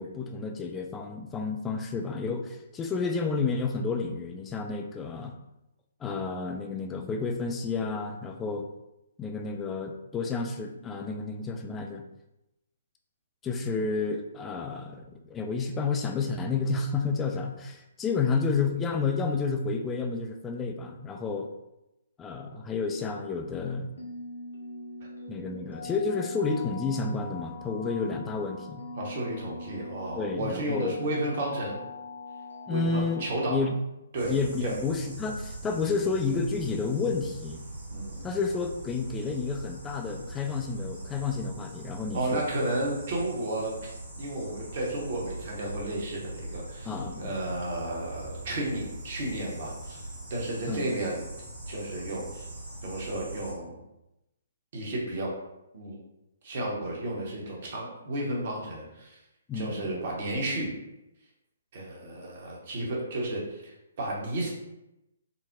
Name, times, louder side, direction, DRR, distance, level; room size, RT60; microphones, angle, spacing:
voice 1, 0.0-5.3 6.0-8.7 9.2-12.0 13.4-21.5 22.2-23.9 25.3-28.8 30.1-31.0 32.7-33.8 34.3-37.6 38.2-42.4 46.9-47.3 50.7-50.9 59.5-60.0, left 4 dB, 15° left, 4 dB, 0.3 m, -30 dB
sound 1, 24.0-33.6, left 3 dB, 70° left, 0.7 m, -42 dB
voice 2, 28.9-31.8 32.7-33.6 34.1-34.3 34.6-34.7 37.9-38.4 42.1-43.8 44.2-50.0 50.3-51.3 51.7-52.5 52.8-53.8 54.7-55.3 55.7-56.0 56.4-59.2 59.5-60.7 61.7-64.5, right 1 dB, 45° right, -3 dB, 0.9 m, -32 dB
sound 2, 34.2-53.5, right 1 dB, 65° right, 1.2 m, -41 dB
3.9 x 2.0 x 2.7 m, 0.91 s
figure-of-eight pair, 130°, 0 cm